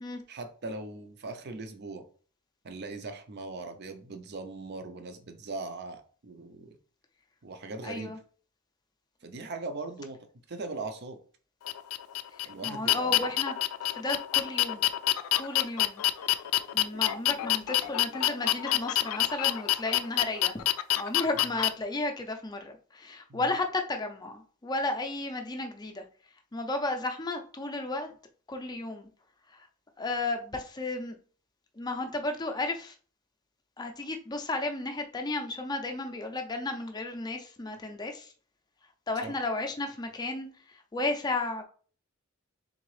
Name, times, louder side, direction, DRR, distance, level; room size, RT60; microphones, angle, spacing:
voice 1, 0.3-2.1 2.6-6.8 7.4-8.1 9.2-10.2 10.5-11.2 12.4-13.3 23.3-23.6 39.2-39.3, right 3 dB, 50° right, 0.6 m, -39 dB
voice 2, 7.8-8.2 12.3-13.5 13.8-14.9 15.4-16.0 16.7-20.6 21.0-26.0 26.5-28.1 28.5-29.1 29.5-29.7 30.0-31.2 31.8-32.9 33.8-38.3 39.1-41.6, left 2 dB, 20° left, 0.5 m, -33 dB
sound 1, 11.6-21.7, left 14 dB, 85° left, 0.3 m, -27 dB
3.8 x 3.4 x 3.2 m
head